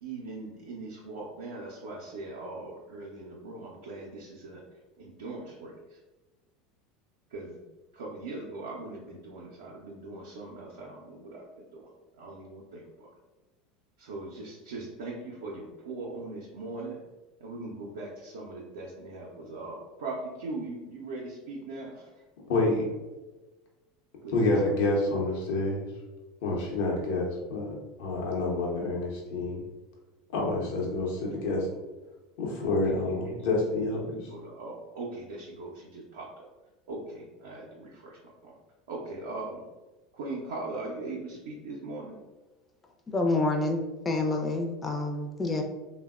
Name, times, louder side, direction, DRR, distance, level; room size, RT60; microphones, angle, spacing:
voice 1, 0.0-4.6 5.0-6.0 7.3-7.6 7.9-13.1 14.0-17.0 17.4-22.1 24.2-24.4 32.8-33.6 34.0-36.5 36.9-38.6 38.9-39.7 40.1-42.2, right 2 dB, 75° right, -4 dB, 0.5 m, -40 dB
voice 2, 22.5-22.9 24.3-25.9 26.4-29.6 30.3-31.7 32.4-34.2, left 2 dB, 65° left, -1 dB, 0.7 m, -28 dB
voice 3, 43.1-45.6, left 2 dB, 20° left, 3 dB, 0.5 m, -28 dB
3.3 x 2.1 x 2.3 m, 1.1 s
hypercardioid pair, 80°, 0 cm